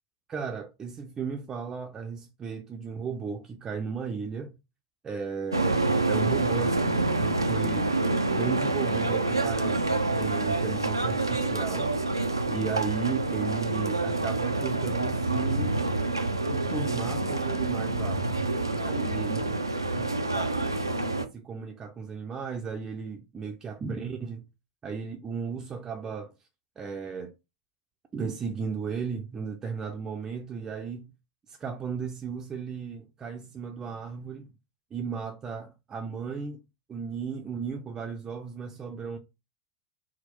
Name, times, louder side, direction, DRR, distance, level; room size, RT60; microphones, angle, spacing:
voice 1, 0.3-4.5 5.0-12.0 12.5-15.8 16.5-18.3 18.7-19.5 20.2-20.7 21.1-24.4 24.8-26.3 26.8-27.3 28.1-31.1 31.5-34.5 34.9-36.6 36.9-39.2, right 6 dB, 25° right, 0.5 m, -35 dB
sound 1, 5.5-21.3, right 2 dB, 90° right, 0.4 m, -27 dB
4.2 x 2.0 x 3.0 m
figure-of-eight pair, 85°, 2 cm